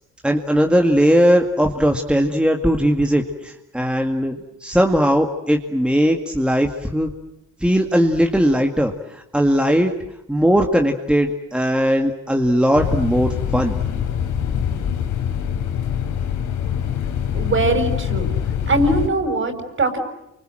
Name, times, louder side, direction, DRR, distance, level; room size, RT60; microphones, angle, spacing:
voice 1, 0.2-7.1 7.6-9.9 10.3-13.8, equal, 5° right, 3 dB, 2.1 m, -18 dB
sound 1, 12.7-19.1, left 8 dB, 80° left, 3.6 m, -24 dB
voice 2, 17.3-18.3 18.7-20.0, right 2 dB, 40° right, 7 dB, 6.2 m, -21 dB
29.0 x 25.5 x 7.7 m, 0.86 s
cardioid pair, 90°, 30 cm